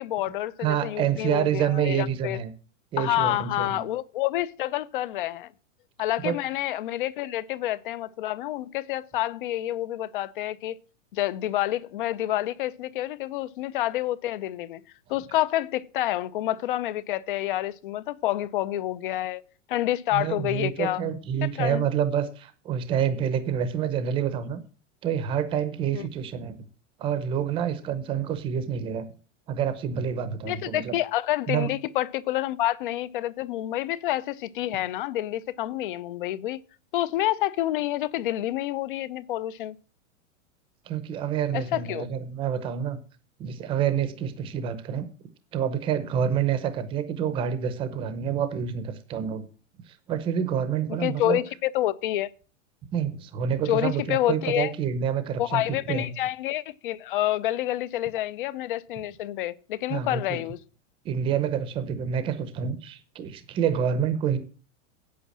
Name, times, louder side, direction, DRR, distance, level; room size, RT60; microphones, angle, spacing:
voice 1, 0.0-2.4 3.0-5.5 6.0-10.8 11.1-14.8 15.1-19.4 19.7-21.0 21.4-21.9 25.9-26.1 30.5-36.6 36.9-39.8 41.5-42.1 51.0-52.3 53.7-54.7 55.4-60.6, left 14 dB, 45° left, 0.6 m, -28 dB
voice 2, 0.6-2.5 2.9-3.8 6.2-6.3 20.1-24.6 25.0-26.6 27.0-29.0 29.5-30.9 31.5-31.7 40.9-43.0 43.4-45.1 45.5-49.5 50.1-51.4 52.9-56.1 59.9-60.4 61.0-64.4, right 8 dB, 15° right, 0.7 m, -27 dB
8.5 x 8.5 x 7.2 m
supercardioid pair, 175°, 38 cm